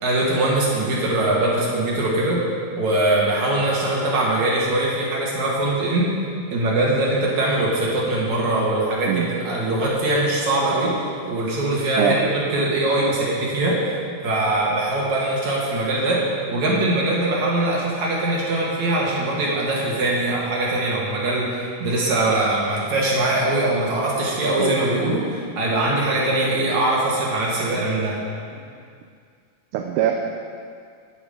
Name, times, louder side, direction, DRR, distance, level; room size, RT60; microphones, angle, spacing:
voice 1, 0.0-2.4 2.7-6.1 6.5-10.9 11.2-13.8 14.2-16.2 16.5-28.2, right 2 dB, 70° right, -5 dB, 2.8 m, -22 dB
voice 2, 29.7-30.1, right 12 dB, 90° right, 3 dB, 2.1 m, -21 dB
9.0 x 8.4 x 5.0 m, 2.2 s
omnidirectional pair, 3.5 m